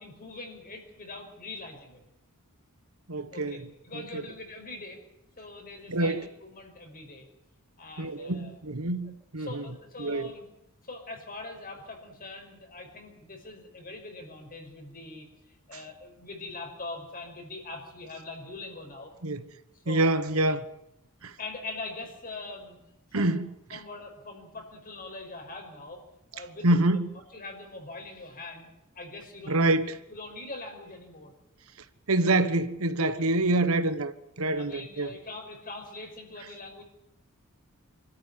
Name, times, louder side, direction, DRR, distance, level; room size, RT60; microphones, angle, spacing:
voice 1, 0.0-2.1 3.3-5.0 5.4-7.3 7.8-8.6 9.4-10.5 10.8-19.1 19.8-20.2 21.4-22.8 23.1-23.4 23.7-26.0 26.3-26.8 27.3-29.8 30.1-31.3 34.6-36.8, left 2 dB, 40° left, 5.3 m, -42 dB
voice 2, 3.1-4.2 5.9-6.3 8.0-9.7 10.0-10.3 19.2-19.4 19.9-20.7 21.2-21.4 23.1-23.8 26.6-27.1 29.5-30.0 32.1-35.2, right 2 dB, 70° right, 1.3 m, -26 dB
25.5 x 13.5 x 9.8 m
head